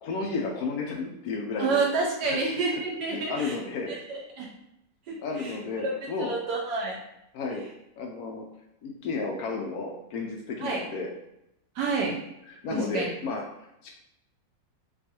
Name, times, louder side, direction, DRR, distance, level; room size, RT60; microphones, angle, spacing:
voice 1, 0.0-1.8 2.2-2.4 3.1-4.0 5.2-6.3 7.3-7.6 8.0-8.4 8.8-11.1 12.5-13.4 13.8-13.9, left 4 dB, 75° left, 1 dB, 0.8 m, -32 dB
voice 2, 1.6-3.5 3.9-4.5 5.1-5.5 5.8-7.0 10.6-10.8 11.8-12.2 12.7-13.1, right 3 dB, 70° right, -1 dB, 1.1 m, -29 dB
4.4 x 2.4 x 2.8 m, 0.84 s
omnidirectional pair, 2.0 m